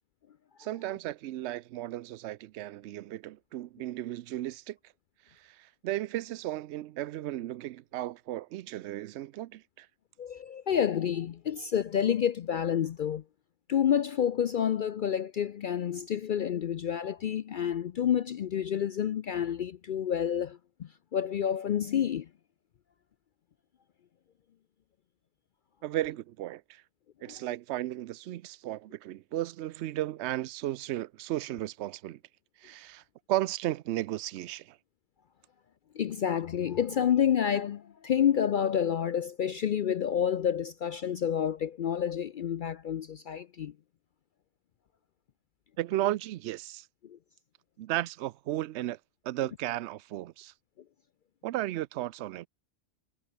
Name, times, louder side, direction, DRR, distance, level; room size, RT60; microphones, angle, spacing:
voice 1, 0.6-4.8 5.4-9.9 25.8-26.8 27.2-32.2 32.6-33.0 33.3-34.8 45.8-46.9 47.8-49.0 49.2-50.5 51.4-52.5, right 14 dB, 70° right, 0.8 m, -34 dB
voice 2, 10.2-13.2 13.7-22.3 27.3-27.4 35.9-43.7 47.0-47.2, left 9 dB, 60° left, 0.5 m, -29 dB
omnidirectional pair, 1.3 m